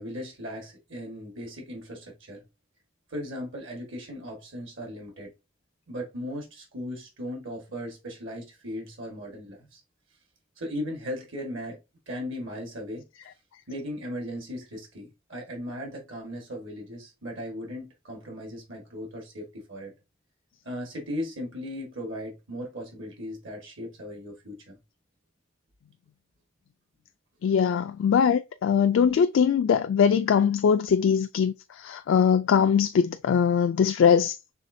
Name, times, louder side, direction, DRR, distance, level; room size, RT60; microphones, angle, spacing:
voice 1, 0.0-2.4 3.1-5.3 5.9-9.8 10.6-11.8 12.1-13.0 13.7-19.9 20.6-24.8, equal, 70° right, 1.5 m, -37 dB
voice 2, 27.4-31.5 31.8-34.3, left 7 dB, 65° left, 0.3 m, -21 dB
5.7 x 3.4 x 2.6 m
head